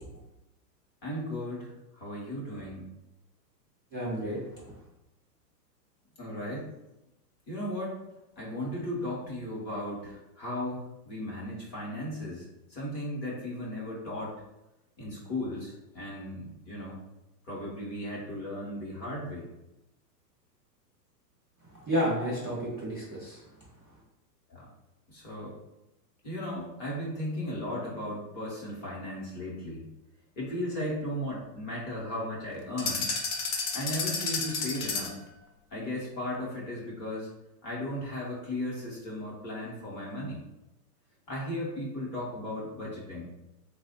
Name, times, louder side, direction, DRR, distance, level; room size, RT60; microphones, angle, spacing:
voice 1, 1.0-2.9 6.2-6.7 7.5-8.0 8.4-12.4 12.7-14.3 15.0-17.0 17.5-19.5 24.5-24.7 25.1-25.6 26.2-29.8 30.4-33.1 33.7-35.1 35.7-37.3 37.6-40.4 41.3-43.3, left 1 dB, 20° left, -5 dB, 0.7 m, -36 dB
voice 2, 3.9-4.4 21.9-23.4, equal, 10° right, -16 dB, 0.4 m, -30 dB
sound 1, 32.8-35.3, left 4 dB, 60° left, 0.8 m, -31 dB
3.7 x 2.0 x 4.1 m, 0.93 s
hypercardioid pair, 155°, 50 cm